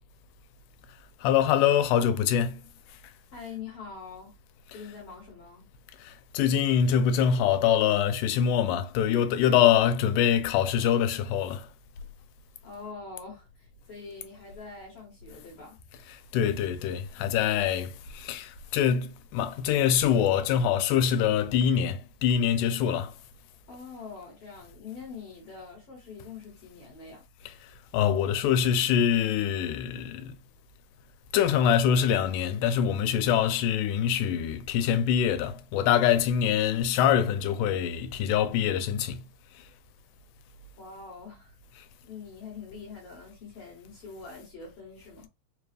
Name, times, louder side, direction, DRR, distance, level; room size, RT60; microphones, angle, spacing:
voice 1, 1.2-2.6 6.0-11.7 16.3-23.1 27.9-30.3 31.3-39.2, left 9 dB, 90° left, 2.1 m, -24 dB
voice 2, 3.3-4.3 4.7-5.7 12.6-15.8 23.7-27.3 40.8-41.6 42.0-45.3, left 5 dB, 60° left, 1.9 m, -44 dB
4.8 x 2.3 x 3.2 m
omnidirectional pair, 3.6 m